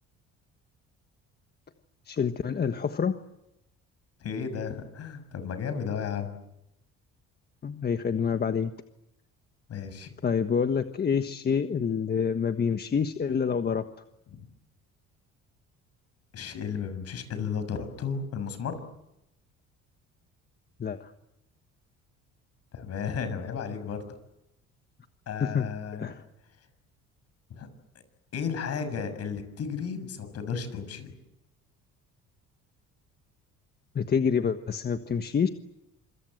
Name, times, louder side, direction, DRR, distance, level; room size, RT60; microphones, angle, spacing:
voice 1, 2.1-3.2 7.6-8.7 10.2-13.9 20.8-21.1 25.4-25.7 26.0-26.2 33.9-35.5, left 6 dB, 35° left, 8 dB, 1.4 m, -27 dB
voice 2, 4.2-6.4 9.7-10.1 14.3-14.4 16.3-18.8 22.7-24.2 25.3-26.1 27.5-27.7 28.3-31.1, left 6 dB, 55° left, 10 dB, 6.8 m, -34 dB
27.0 x 25.0 x 7.9 m, 0.86 s
cardioid pair, 100°, 29 cm